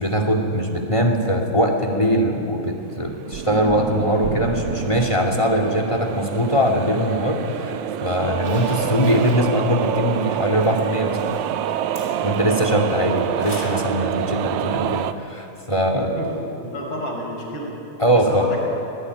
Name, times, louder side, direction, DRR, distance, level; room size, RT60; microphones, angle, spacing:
voice 1, 0.0-11.2 12.2-16.1 18.0-18.5, equal, 10° left, 3 dB, 2.1 m, -21 dB
sound 1, 2.7-15.1, right 10 dB, 85° right, 2.1 m, -27 dB
sound 2, 3.3-7.6, right 7 dB, 55° right, 1.8 m, -33 dB
Zipper (clothing), 8.4-13.9 14.2-14.3 16.2-16.3 16.7-16.8, right 1 dB, 20° right, 5.5 m, -41 dB
voice 2, 15.9-16.3 16.6-17.7 18.1-18.6, equal, 50° left, -1 dB, 6.3 m, -30 dB
25.0 x 18.5 x 9.7 m, 2.9 s
omnidirectional pair, 3.3 m